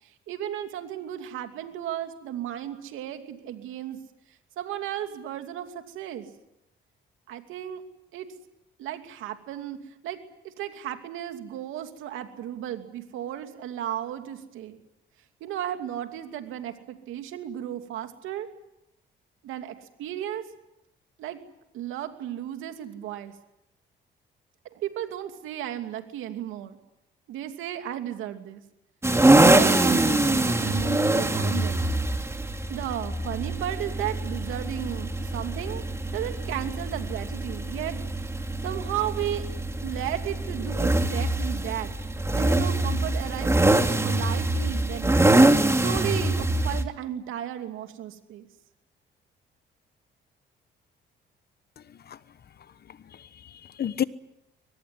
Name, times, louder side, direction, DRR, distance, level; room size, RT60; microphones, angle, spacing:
voice 1, 0.3-4.0 4.6-6.3 7.3-7.8 8.1-8.3 8.8-10.2 10.4-14.8 15.4-18.5 19.4-20.4 21.2-21.4 21.7-23.3 24.6-26.8 27.3-28.6 29.2-31.9 32.7-35.8 36.1-38.0 38.6-39.4 39.8-41.9 42.3-43.6 44.0-45.1 45.8-48.5, right 11 dB, 90° right, 2.7 m, -34 dB
sound 1, 29.0-46.8, right 2 dB, 15° right, 2.6 m, -24 dB
voice 2, 51.8-52.2 52.9-54.0, left 9 dB, 50° left, 1.2 m, -33 dB
23.5 x 19.5 x 9.7 m
cardioid pair, 90°, 20 cm